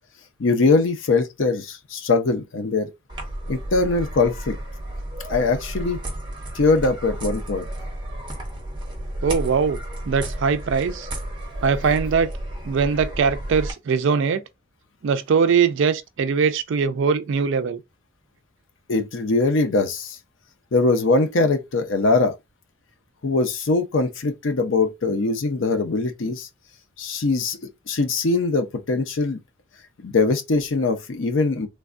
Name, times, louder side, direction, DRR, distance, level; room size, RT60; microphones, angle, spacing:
voice 1, 0.4-2.9 3.5-4.6 5.3-6.0 6.5-7.6 18.9-20.2 20.7-22.4 23.2-26.5 27.0-27.6 27.9-29.4 30.0-31.7, left 3 dB, 55° left, 0.5 m, -21 dB
sound 1, 3.1-13.7, right 1 dB, 20° right, 0.7 m, -32 dB
voice 2, 9.2-9.8 10.1-11.1 11.6-12.3 12.6-14.4 15.0-17.8, right 5 dB, 55° right, 0.3 m, -21 dB
3.3 x 2.2 x 2.4 m
head